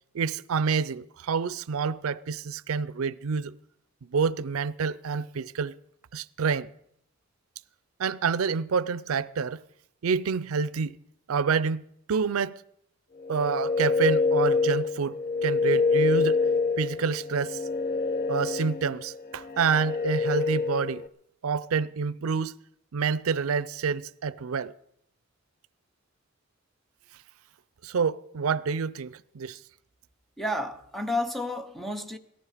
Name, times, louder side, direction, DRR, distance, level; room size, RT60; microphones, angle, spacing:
voice 1, 0.1-3.5 4.0-5.8 6.1-6.7 8.0-9.6 10.0-11.0 11.3-12.6 13.3-16.5 16.8-17.6 18.3-21.0 21.4-22.6 22.9-24.7 27.8-29.6, right 5 dB, 85° right, 0.5 m, -28 dB
sound 1, 13.2-21.1, left 4 dB, 45° left, 0.6 m, -26 dB
voice 2, 30.4-32.2, left 1 dB, ahead, 0.9 m, -31 dB
18.0 x 14.0 x 5.0 m
head